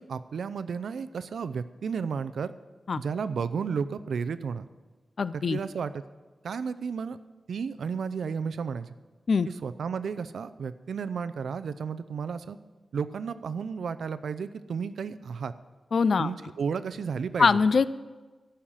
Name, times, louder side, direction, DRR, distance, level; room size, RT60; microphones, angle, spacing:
voice 1, 0.0-2.5 3.0-4.7 5.4-6.0 6.4-7.2 7.5-8.9 9.5-12.6 12.9-15.5 16.2-17.5, right 6 dB, 85° right, 13 dB, 0.5 m, -33 dB
voice 2, 5.2-5.6 9.3-9.5 15.9-16.3 17.4-17.9, left 5 dB, 55° left, 16 dB, 0.4 m, -22 dB
14.5 x 5.7 x 8.8 m, 1.3 s
wide cardioid pair, 170°, 0 cm